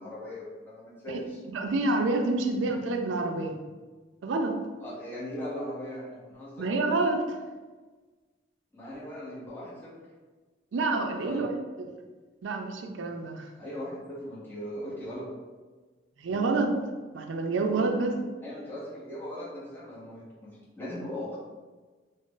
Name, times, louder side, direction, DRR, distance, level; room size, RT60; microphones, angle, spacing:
voice 1, 0.0-1.2 4.8-6.7 8.7-9.9 11.2-11.5 13.6-15.2 18.4-21.4, left 1 dB, 10° left, -9 dB, 0.8 m, -39 dB
voice 2, 1.1-3.6 4.2-4.6 6.6-7.4 10.7-11.5 11.8-11.9 12.4-13.5 16.2-16.8 17.1-18.2, right 3 dB, 80° right, 4 dB, 0.4 m, -28 dB
2.4 x 2.0 x 3.7 m, 1.3 s
head